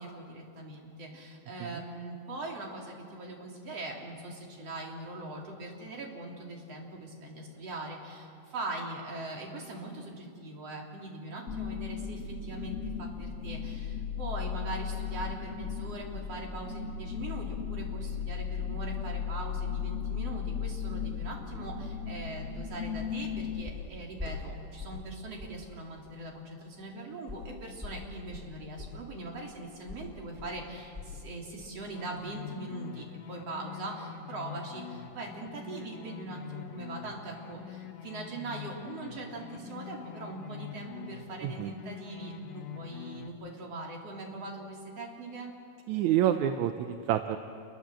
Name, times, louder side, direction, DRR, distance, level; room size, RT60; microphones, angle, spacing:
voice 1, 0.0-45.5, right 2 dB, 50° right, -1 dB, 4.2 m, -41 dB
sound 1, 11.5-23.6, left 7 dB, 50° left, 0.9 m, -36 dB
sound 2, 22.5-22.7 23.1-23.3 23.6-25.1 25.4-25.6 26.0-26.2 27.3-31.3 31.6-31.8 32.2-32.3, left 4 dB, 5° left, 3.3 m, -43 dB
sound 3, 31.9-43.3, left 9 dB, 90° left, 2.9 m, -45 dB
voice 2, 45.9-47.4, right 11 dB, 70° right, 7 dB, 2.0 m, -27 dB
28.5 x 22.0 x 7.7 m, 2.5 s
omnidirectional pair, 3.8 m